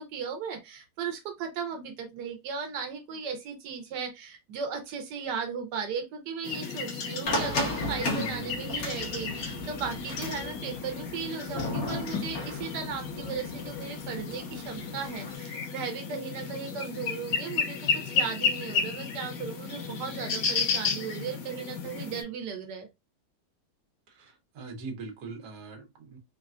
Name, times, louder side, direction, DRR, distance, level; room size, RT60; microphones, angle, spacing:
voice 1, 0.0-17.8 18.0-22.9, right 6 dB, 90° right, 1.3 m, -36 dB
sound 1, 6.4-22.2, left 6 dB, 90° left, 1.4 m, -33 dB
sound 2, 7.3-15.4, left 1 dB, 60° left, 1.3 m, -35 dB
voice 2, 24.2-26.2, right 4 dB, 70° right, 1.3 m, -41 dB
4.0 x 2.2 x 2.3 m
omnidirectional pair, 1.8 m